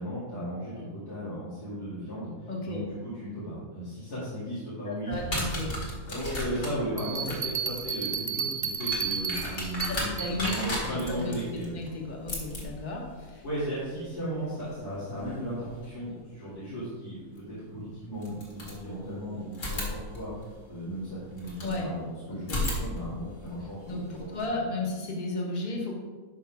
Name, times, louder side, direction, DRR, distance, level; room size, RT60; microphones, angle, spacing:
voice 1, 0.0-5.1 6.1-11.7 13.4-20.3 20.7-24.4, equal, 90° left, -12 dB, 3.2 m, -36 dB
voice 2, 2.5-2.8 4.8-5.8 9.9-10.5 10.9-13.4 21.6-21.9 22.3-22.6 23.9-25.9, left 2 dB, 30° left, -1 dB, 1.4 m, -34 dB
sound 1, 5.1-15.9 17.4-17.5 18.2-19.2 19.5-21.8 22.4-24.5, left 1 dB, 55° left, 2.3 m, -37 dB
sound 2, 7.0-10.6, right 7 dB, 70° right, 0.4 m, -32 dB
11.5 x 5.4 x 3.5 m, 1.4 s
omnidirectional pair, 1.6 m